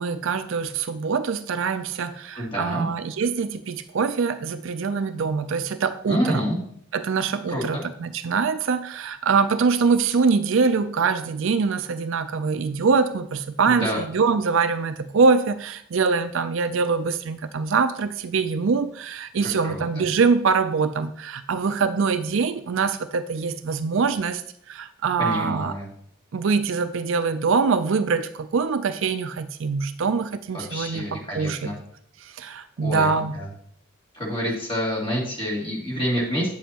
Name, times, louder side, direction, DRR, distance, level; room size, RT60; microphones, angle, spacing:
voice 1, 0.0-6.5 6.9-24.4 24.7-25.7 26.3-31.7 32.2-33.4, right 5 dB, 60° right, 11 dB, 0.4 m, -24 dB
voice 2, 2.4-2.9 6.1-6.6 7.5-7.8 13.6-14.0 19.4-19.8 25.2-25.9 30.5-31.8 32.8-33.5 34.1-36.5, equal, 25° left, -4 dB, 2.5 m, -28 dB
8.9 x 7.2 x 2.9 m, 0.64 s
head